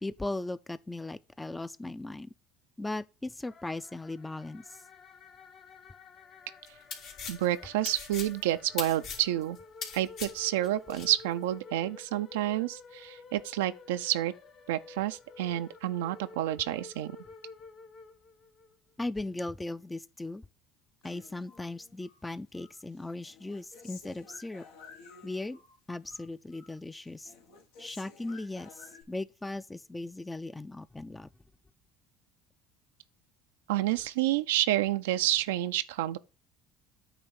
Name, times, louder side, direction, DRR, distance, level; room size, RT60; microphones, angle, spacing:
voice 1, 0.0-2.3 2.8-4.8 19.0-20.4 21.0-24.6 25.2-25.6 25.9-27.3 27.8-31.3, left 2 dB, 10° left, 0.4 m, -38 dB
sound 1, 3.4-18.7, left 4 dB, 45° left, 1.0 m, -51 dB
sound 2, 6.7-11.1, left 6 dB, 65° left, 2.0 m, -40 dB
voice 2, 7.3-9.6 9.9-14.3 14.7-17.2 33.7-36.2, right 14 dB, 85° right, 0.4 m, -29 dB
Human voice, 21.0-22.2 22.6-25.8 26.0-26.8 27.0-29.0, left 5 dB, 85° left, 1.5 m, -53 dB
8.9 x 3.1 x 5.8 m
hypercardioid pair, 80°, 0 cm